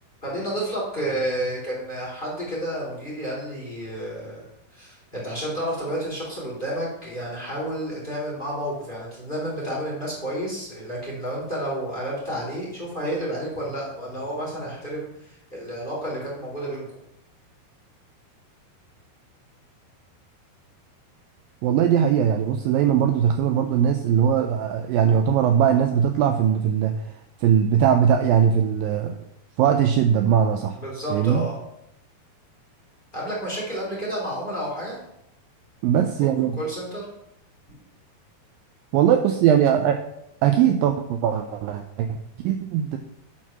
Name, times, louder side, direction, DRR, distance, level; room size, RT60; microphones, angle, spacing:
voice 1, 0.2-4.5 4.7-16.9 30.8-31.6 33.1-35.0 36.6-37.0, right 1 dB, 15° left, -4 dB, 2.6 m, -30 dB
voice 2, 21.6-27.1 27.4-29.2 29.6-30.8 31.1-31.5 35.8-36.6 38.9-40.0 40.4-43.0, right 9 dB, 85° right, 6 dB, 2.0 m, -20 dB
10.0 x 4.6 x 5.9 m, 0.82 s
omnidirectional pair, 4.6 m